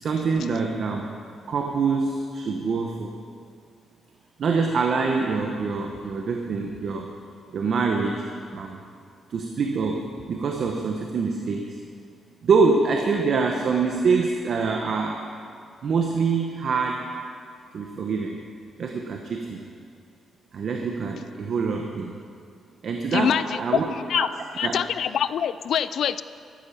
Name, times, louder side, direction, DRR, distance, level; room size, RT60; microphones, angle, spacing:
voice 1, 0.0-1.1 1.5-3.1 4.4-7.1 7.5-8.2 8.5-8.8 9.3-11.8 12.4-15.2 15.8-17.1 17.7-18.4 18.8-19.6 20.5-22.1 22.8-23.9 24.1-24.3 24.6-24.8, right 4 dB, 45° right, 3 dB, 0.9 m, -25 dB
voice 2, 23.1-24.3 24.6-26.2, left 8 dB, 55° left, 15 dB, 0.3 m, -25 dB
13.5 x 12.0 x 5.8 m, 2.3 s
cardioid pair, 180°, 0 cm